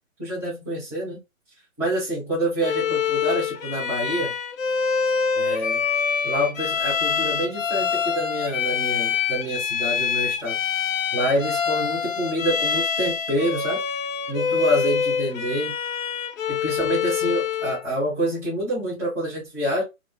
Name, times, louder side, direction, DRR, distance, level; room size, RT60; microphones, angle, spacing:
voice 1, 0.2-1.2 1.8-4.3 5.3-5.8 6.2-10.6 11.1-13.8 14.3-15.7 16.5-19.8, equal, 5° right, 1.0 m, -27 dB
Bowed string instrument, 2.6-17.8, left 7 dB, 70° left, 0.7 m, -25 dB
3.6 x 2.0 x 2.2 m
hypercardioid pair, 170°, 41 cm